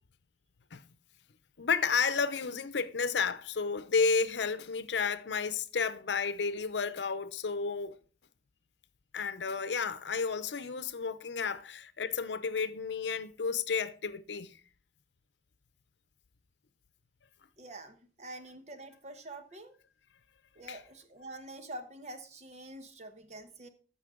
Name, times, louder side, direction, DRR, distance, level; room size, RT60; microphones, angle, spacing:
voice 1, 1.6-7.9 9.1-14.5 20.7-20.8, left 5 dB, 85° left, 0.7 m, -32 dB
voice 2, 17.6-19.7 20.6-23.7, right 1 dB, 40° right, 1.2 m, -46 dB
14.5 x 5.5 x 3.7 m
head